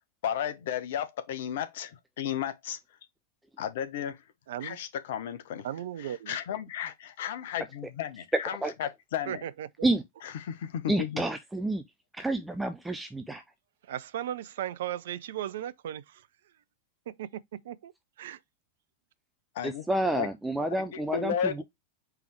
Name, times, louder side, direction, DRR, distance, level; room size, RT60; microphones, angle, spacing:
voice 1, 0.2-2.8 3.6-4.2 4.6-5.7 6.3-9.4 10.4-11.2 19.5-19.8 20.1-20.3 20.9-21.6, left 9 dB, 55° left, 0.8 m, -33 dB
voice 2, 4.5-4.8 5.6-6.4 9.3-9.9 13.8-16.3 17.1-17.9 18.2-18.4, right 11 dB, 60° right, 0.4 m, -36 dB
voice 3, 8.3-8.7 9.8-10.0 10.9-11.8 12.1-13.4 19.6-21.6, right 1 dB, 5° right, 0.5 m, -29 dB
4.7 x 3.4 x 3.2 m
figure-of-eight pair, 90°, 0 cm